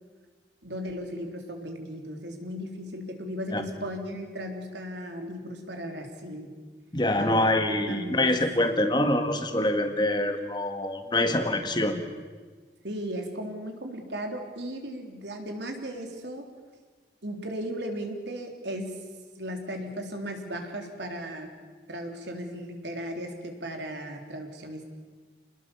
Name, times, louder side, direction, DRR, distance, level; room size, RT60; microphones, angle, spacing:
voice 1, 0.6-6.5 7.2-7.4 7.9-8.3 12.8-16.4 17.2-19.0 19.4-21.5 21.9-24.9, equal, 75° right, 3 dB, 3.7 m, -36 dB
voice 2, 6.9-12.0, left 1 dB, 25° left, 7 dB, 1.7 m, -25 dB
28.5 x 20.5 x 7.2 m, 1.4 s
head